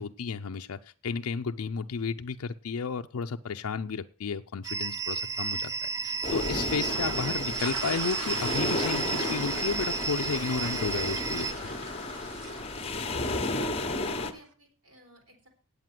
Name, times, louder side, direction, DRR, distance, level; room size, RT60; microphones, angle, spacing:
voice 1, 0.0-5.7 6.0-11.7, left 5 dB, 75° left, 5 dB, 0.5 m, -33 dB
sound 1, 4.6-11.5, right 5 dB, 15° right, 0.5 m, -33 dB
sound 2, 6.2-14.3, left 2 dB, 25° left, 1.1 m, -33 dB
sound 3, 6.7-14.0, right 4 dB, 80° right, 1.1 m, -41 dB
voice 2, 13.6-15.5, right 1 dB, 65° right, 2 dB, 3.8 m, -56 dB
9.2 x 8.3 x 7.5 m, 0.43 s
head